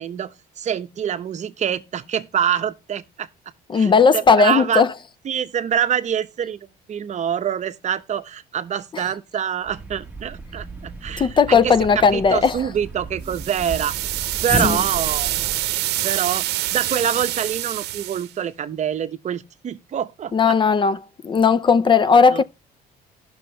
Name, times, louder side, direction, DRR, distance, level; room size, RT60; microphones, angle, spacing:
voice 1, 0.0-3.3 3.7-4.8 5.2-6.6 6.9-13.9 14.4-15.3 16.0-20.6 22.3-22.4, right 9 dB, 45° right, 0.8 m, -26 dB
voice 2, 3.7-4.9 8.9-9.0 11.2-12.6 14.6-14.8 20.3-21.0 21.2-22.4, left 5 dB, 30° left, 0.5 m, -16 dB
Thump thud, 9.6-15.8, right 2 dB, 10° right, 1.4 m, -33 dB
sound 1, 13.3-18.3, right 15 dB, 80° right, 0.7 m, -26 dB
16.5 x 6.2 x 3.3 m
cardioid pair, 110°, 17 cm